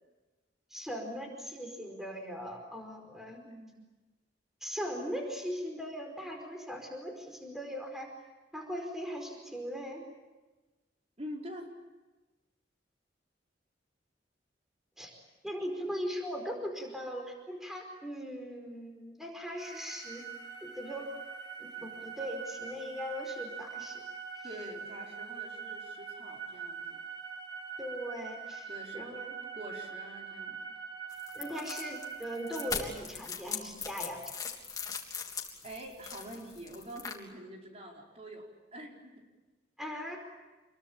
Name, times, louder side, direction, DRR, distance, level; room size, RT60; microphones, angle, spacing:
voice 1, 0.7-3.4 4.6-8.1 8.5-10.0 15.0-15.1 15.4-20.2 20.6-21.1 21.6-24.0 24.4-24.5 27.8-29.3 31.3-34.2 39.8-40.2, equal, ahead, 2 dB, 4.8 m, -39 dB
voice 2, 3.4-3.8 11.2-11.7 24.4-27.0 28.7-29.1 29.5-30.6 35.6-39.2, equal, 35° right, 0 dB, 4.9 m, -46 dB
sound 1, 19.6-32.7, right 6 dB, 80° right, 3.7 m, -43 dB
sound 2, 31.1-37.1, left 5 dB, 20° left, 3.3 m, -40 dB
27.5 x 23.0 x 8.8 m, 1.2 s
head